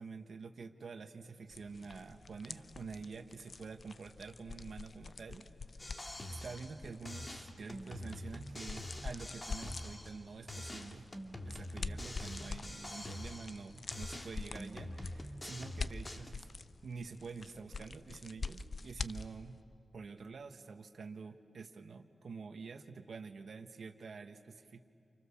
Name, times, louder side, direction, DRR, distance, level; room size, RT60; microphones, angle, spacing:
voice 1, 0.0-5.5 6.3-11.1 11.4-16.5 16.8-19.6 19.9-24.8, right 4 dB, 70° right, 6 dB, 1.5 m, -47 dB
sound 1, 1.5-19.6, left 4 dB, 50° left, 0.7 m, -46 dB
sound 2, 5.8-6.8 7.1-10.2 10.5-13.7 13.9-16.3, left 1 dB, 25° left, 2.2 m, -45 dB
29.0 x 29.0 x 7.2 m, 2.3 s
wide cardioid pair, 95°, 0 cm